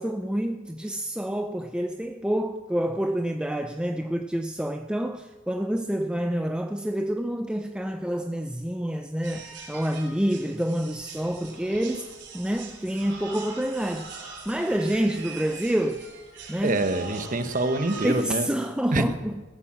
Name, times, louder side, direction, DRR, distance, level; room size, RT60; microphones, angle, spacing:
voice 1, 0.0-12.1 12.3-16.0 16.5-16.8 18.0-19.4, right 1 dB, 5° right, 0.5 m, -28 dB
sound 1, 9.2-18.3, right 4 dB, 60° right, 3.7 m, -42 dB
voice 2, 16.6-18.5 18.9-19.1, right 2 dB, 40° right, 1.2 m, -25 dB
15.5 x 12.0 x 7.6 m
head